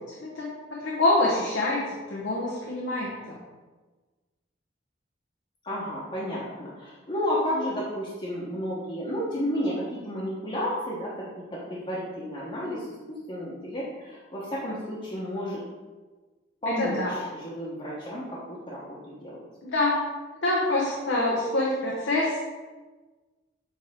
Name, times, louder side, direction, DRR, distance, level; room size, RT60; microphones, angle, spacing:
voice 1, 0.0-1.8 2.1-3.4 16.8-17.1 19.6-20.0 20.4-22.4, left 2 dB, 80° left, -4 dB, 1.0 m, -26 dB
voice 2, 5.6-15.6 16.6-19.4, equal, 30° left, -8 dB, 1.1 m, -32 dB
7.4 x 3.5 x 3.6 m, 1.3 s
head